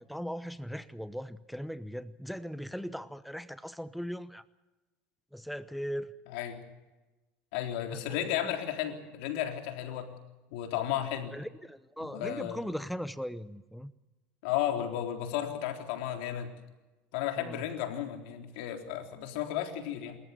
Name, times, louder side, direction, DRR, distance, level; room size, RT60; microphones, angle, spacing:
voice 1, 0.0-4.4 5.3-6.1 7.9-8.2 11.3-13.9 17.4-17.6, equal, ahead, 14 dB, 0.8 m, -39 dB
voice 2, 6.3-6.6 7.5-10.1 10.5-11.3 12.0-12.6 14.4-16.5 17.1-20.2, left 11 dB, 80° left, 4 dB, 3.8 m, -33 dB
27.0 x 14.0 x 8.5 m, 1.1 s
supercardioid pair, 105°, 6 cm